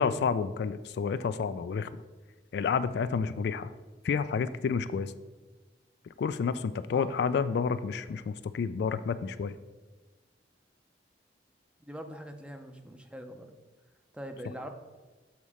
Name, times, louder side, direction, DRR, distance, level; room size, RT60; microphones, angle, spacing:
voice 1, 0.0-1.9 2.5-3.7 4.0-5.1 6.2-9.5, left 5 dB, 65° left, 13 dB, 0.3 m, -30 dB
voice 2, 11.9-13.6 14.1-14.7, equal, 5° right, 6 dB, 0.5 m, -42 dB
7.1 x 4.1 x 4.9 m, 1.3 s
head